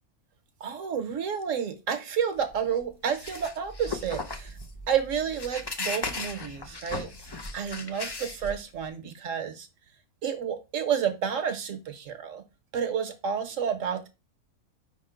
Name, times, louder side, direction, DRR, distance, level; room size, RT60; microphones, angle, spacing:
voice 1, 0.6-4.6 4.9-7.1 7.5-9.7 10.2-12.4 12.7-14.1, right 7 dB, 65° right, 1.2 m, -30 dB
sound 1, 2.4-8.9, left 3 dB, 40° left, 0.3 m, -37 dB
5.3 x 3.6 x 5.0 m
omnidirectional pair, 1.5 m